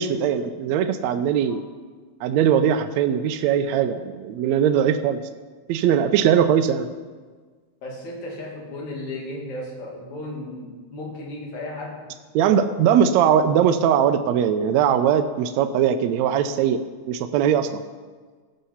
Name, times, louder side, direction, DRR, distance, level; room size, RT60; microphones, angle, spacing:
voice 1, 0.0-1.6 2.2-5.2 5.7-6.9 12.4-16.8 17.1-17.8, right 8 dB, 75° right, 8 dB, 1.8 m, -20 dB
voice 2, 7.8-12.1, left 1 dB, 70° left, -1 dB, 3.5 m, -34 dB
16.0 x 6.9 x 5.6 m, 1.4 s
omnidirectional pair, 3.4 m